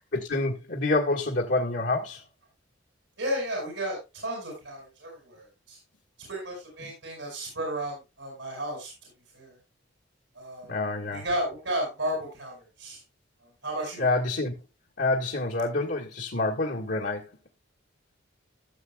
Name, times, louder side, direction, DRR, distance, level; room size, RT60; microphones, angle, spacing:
voice 1, 0.1-2.2 6.8-6.9 10.7-11.2 14.0-14.5 15.0-17.3, left 2 dB, 65° left, 1.6 m, -27 dB
voice 2, 3.2-5.8 6.2-8.9 9.3-9.6 10.3-10.7 11.1-13.0 13.4-14.1, right 1 dB, 80° right, 6.0 m, -33 dB
15.5 x 7.5 x 2.3 m
head